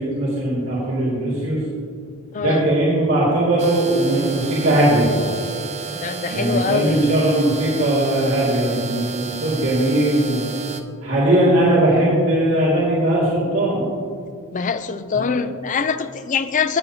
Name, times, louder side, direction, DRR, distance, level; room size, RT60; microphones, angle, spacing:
voice 1, 0.0-1.6 2.4-5.1 6.3-10.4 11.0-13.8 15.1-15.4, right 1 dB, 65° right, -8 dB, 2.3 m, -19 dB
sound 1, 3.6-10.8, right 5 dB, 30° right, 0.6 m, -32 dB
voice 2, 6.0-7.0 14.5-16.8, left 5 dB, 35° left, 11 dB, 0.4 m, -23 dB
16.5 x 8.3 x 2.8 m, 2.3 s
head